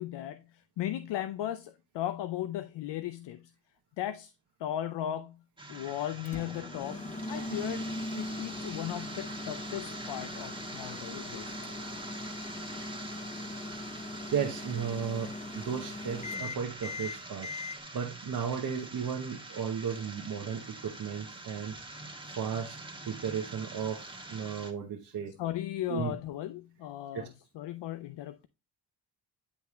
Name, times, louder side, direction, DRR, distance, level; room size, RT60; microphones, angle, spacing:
voice 1, 0.0-3.5 4.0-4.3 4.6-5.4 5.7-7.9 8.1-11.6 25.4-28.5, left 12 dB, 80° left, 0.6 m, -37 dB
sound 1, 5.6-24.7, right 2 dB, 10° right, 1.4 m, -45 dB
Microwave oven, 6.2-17.8, left 2 dB, 15° left, 0.6 m, -40 dB
voice 2, 14.3-17.5 17.9-21.8 22.4-22.8 23.1-24.0 24.3-25.4 25.9-26.1 27.1-27.2, right 7 dB, 60° right, 1.1 m, -34 dB
9.8 x 3.5 x 3.1 m
cardioid pair, 65°, 41 cm